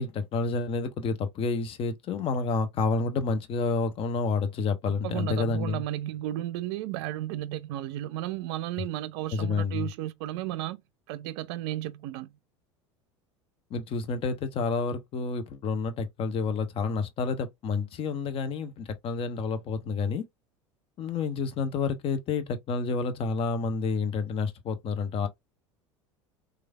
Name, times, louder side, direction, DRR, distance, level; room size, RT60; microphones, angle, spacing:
voice 1, 0.0-5.8 9.3-9.9 13.7-20.2 21.0-25.3, left 4 dB, 35° left, 0.6 m, -29 dB
voice 2, 5.0-10.8 11.1-12.3, right 14 dB, 55° right, 0.4 m, -33 dB
3.1 x 2.3 x 2.2 m
figure-of-eight pair, 75°, 16 cm